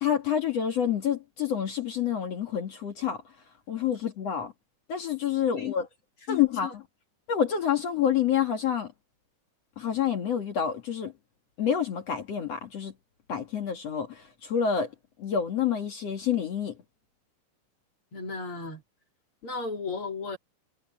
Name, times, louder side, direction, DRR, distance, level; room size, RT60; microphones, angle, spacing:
voice 1, 0.0-3.2 3.7-4.5 4.9-5.8 6.3-6.7 7.3-8.9 9.8-11.1 11.6-12.9 13.3-14.9 15.2-16.7, left 8 dB, 60° left, 1.7 m, -28 dB
voice 2, 6.3-6.7 18.1-18.8 19.4-20.4, left 5 dB, 35° left, 2.7 m, -34 dB
omnidirectional pair, 5.7 m